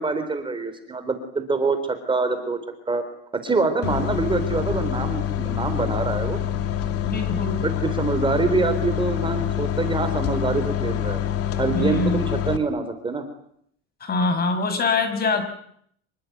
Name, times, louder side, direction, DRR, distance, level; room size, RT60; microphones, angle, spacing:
voice 1, 0.0-2.6 2.9-3.0 3.4-6.4 7.6-11.2 11.6-13.3, right 3 dB, 15° right, 8 dB, 4.0 m, -25 dB
sound 1, 3.8-12.6, left 10 dB, 45° left, 2.7 m, -26 dB
voice 2, 7.0-7.6 11.7-12.3 14.0-15.4, left 3 dB, 30° left, 10 dB, 5.6 m, -24 dB
26.5 x 22.5 x 9.4 m, 0.68 s
supercardioid pair, 135°, 33 cm